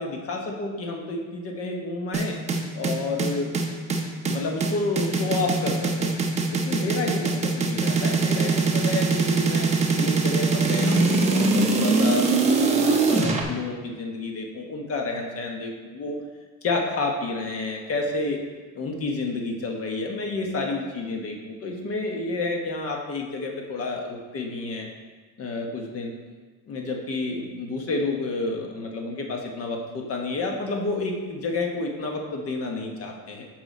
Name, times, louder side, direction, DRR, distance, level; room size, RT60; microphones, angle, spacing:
voice 1, 0.0-2.3 2.7-3.5 4.2-6.1 6.5-16.2 16.6-18.4 18.7-24.9 25.4-26.1 26.7-33.4, left 3 dB, 40° left, 1 dB, 1.0 m, -30 dB
sound 1, 2.1-13.4, right 4 dB, 20° right, 0.6 m, -22 dB
7.5 x 4.9 x 4.1 m, 1.4 s
cardioid pair, 165°, 34 cm